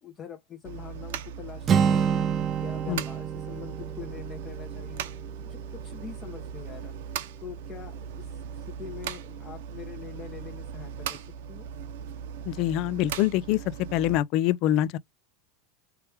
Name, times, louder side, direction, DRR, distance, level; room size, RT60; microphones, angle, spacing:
voice 1, 0.0-5.0 5.4-6.9 7.4-11.7, left 8 dB, 30° left, 1.0 m, -44 dB
sound 1, 0.6-14.2, right 8 dB, 75° right, 0.7 m, -38 dB
Acoustic guitar, 1.7-5.6, right 7 dB, 30° right, 0.5 m, -28 dB
voice 2, 12.5-13.6 13.9-15.0, left 13 dB, 55° left, 0.4 m, -25 dB
3.2 x 3.1 x 3.3 m
supercardioid pair, 110°, 0 cm